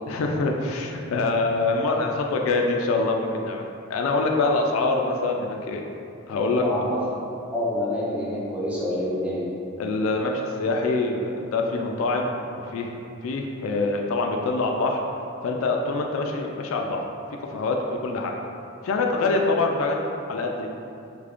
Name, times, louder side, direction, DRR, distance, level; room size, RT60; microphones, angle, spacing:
voice 1, 0.1-3.6 3.9-5.8 6.3-6.9 9.8-12.3 12.6-12.9 13.2-15.0 15.4-17.1 17.5-17.8 18.0-18.3 18.8-20.0 20.3-20.7, left 3 dB, 80° left, 2 dB, 0.3 m, -24 dB
voice 2, 6.6-7.0 7.5-9.5, left 1 dB, 5° right, -7 dB, 0.5 m, -27 dB
3.2 x 2.5 x 3.5 m, 2.6 s
head